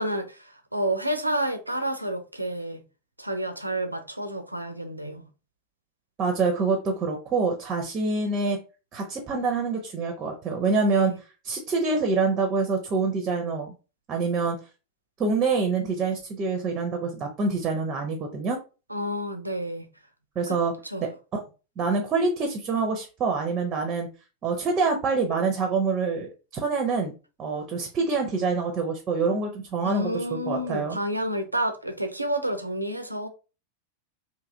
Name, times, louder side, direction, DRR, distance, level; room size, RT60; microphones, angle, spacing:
voice 1, 0.0-2.8 3.2-5.2 10.9-11.2 18.9-19.9 20.5-20.6 20.8-21.1 29.8-33.3, right 1 dB, 85° right, 0.4 m, -30 dB
voice 2, 6.2-8.6 8.9-11.1 11.4-13.7 14.1-14.6 15.2-18.6 20.4-20.7 21.0-21.1 21.8-24.1 24.4-27.1 27.4-31.0, right 4 dB, 30° right, 0.6 m, -26 dB
2.8 x 2.4 x 2.7 m
figure-of-eight pair, 90°, 0 cm